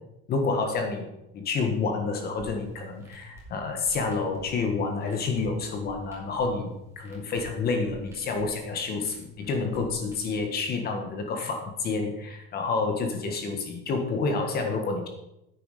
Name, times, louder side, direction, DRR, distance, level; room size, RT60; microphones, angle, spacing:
voice 1, 0.3-15.1, left 4 dB, 30° left, 4 dB, 1.6 m, -29 dB
sound 1, 2.4-10.4, equal, 10° right, 3.2 m, -49 dB
10.0 x 9.2 x 5.0 m, 0.87 s
cardioid pair, 170°, 31 cm